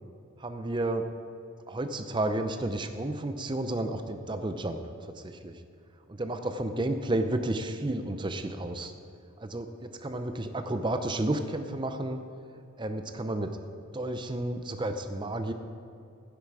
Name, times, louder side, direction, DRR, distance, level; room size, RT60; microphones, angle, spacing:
voice 1, 0.4-1.1 1.7-5.6 6.1-8.9 9.4-12.2 12.8-13.6 13.9-15.5, right 1 dB, 25° right, 8 dB, 0.6 m, -32 dB
11.5 x 9.9 x 4.8 m, 2.6 s
head